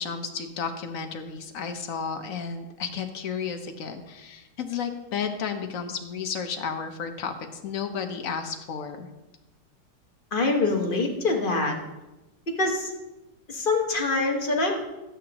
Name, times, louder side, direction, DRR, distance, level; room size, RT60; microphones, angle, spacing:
voice 1, 0.0-7.3 7.6-9.1, left 6 dB, 60° left, 6 dB, 1.0 m, -32 dB
voice 2, 10.3-11.7 12.6-12.9 13.5-14.8, left 3 dB, 35° left, 1 dB, 1.1 m, -24 dB
12.5 x 8.5 x 2.9 m, 1.0 s
omnidirectional pair, 2.0 m